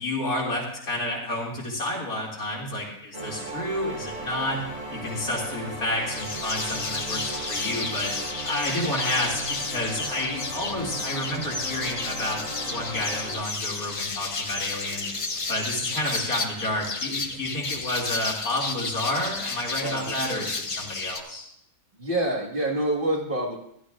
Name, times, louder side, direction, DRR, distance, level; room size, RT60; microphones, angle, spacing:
voice 1, 0.0-8.1 8.4-15.1 15.5-21.4, left 1 dB, 85° left, -4 dB, 3.2 m, -30 dB
sound 1, 3.1-13.3, right 2 dB, 60° right, 5.3 m, -37 dB
sound 2, 6.1-21.2, left 3 dB, 40° left, 0.4 m, -32 dB
voice 2, 19.8-20.5 21.9-23.6, right 1 dB, 35° right, -2 dB, 1.9 m, -27 dB
15.5 x 12.0 x 2.5 m, 0.72 s
omnidirectional pair, 1.5 m